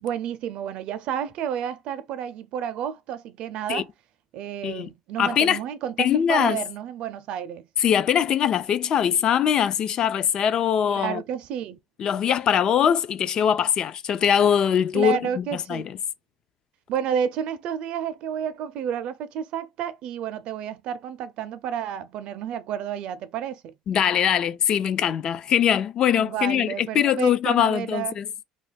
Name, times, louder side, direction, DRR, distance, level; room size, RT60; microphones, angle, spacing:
voice 1, 0.0-3.9 4.3-7.6 10.9-11.8 14.9-15.9 16.9-23.7 26.2-28.1, right 9 dB, 55° right, 0.4 m, -30 dB
voice 2, 5.2-5.6 6.0-6.6 7.8-11.2 12.0-15.4 15.7-16.0 23.9-28.3, left 9 dB, 40° left, 0.3 m, -22 dB
2.7 x 2.4 x 4.0 m
cardioid pair, 155°, 2 cm